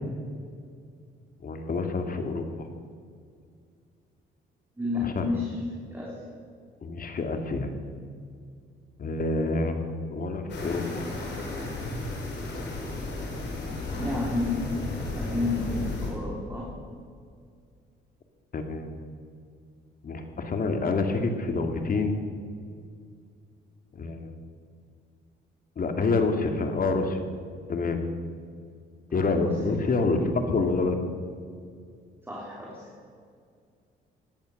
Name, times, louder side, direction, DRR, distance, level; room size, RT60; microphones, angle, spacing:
voice 1, 1.4-2.5 5.0-5.2 6.8-7.7 9.0-11.1 18.5-19.0 20.0-22.1 23.9-24.3 25.8-27.2 27.7-28.0 29.1-31.0, left 3 dB, 45° left, 5 dB, 2.3 m, -27 dB
voice 2, 4.8-5.6 5.9-6.3 13.9-14.7 15.2-16.8 29.1-29.7 30.1-30.2 32.2-32.9, left 3 dB, 10° right, -4 dB, 3.3 m, -31 dB
sound 1, 10.5-16.1, left 2 dB, 60° left, 4.7 m, -33 dB
17.5 x 11.0 x 6.6 m, 2.2 s
cardioid pair, 90°, 20 cm